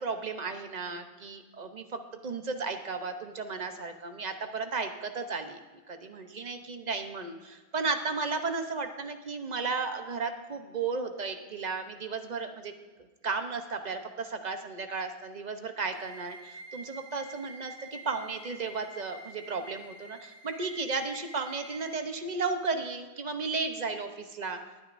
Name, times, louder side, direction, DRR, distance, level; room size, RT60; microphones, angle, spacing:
voice 1, 0.0-5.6 5.9-12.7 13.2-24.6, right 4 dB, 45° right, 7 dB, 1.0 m, -34 dB
sound 1, 15.9-21.9, right 1 dB, 90° left, 1.9 m, -48 dB
19.5 x 9.3 x 2.6 m, 1.3 s
omnidirectional pair, 1.1 m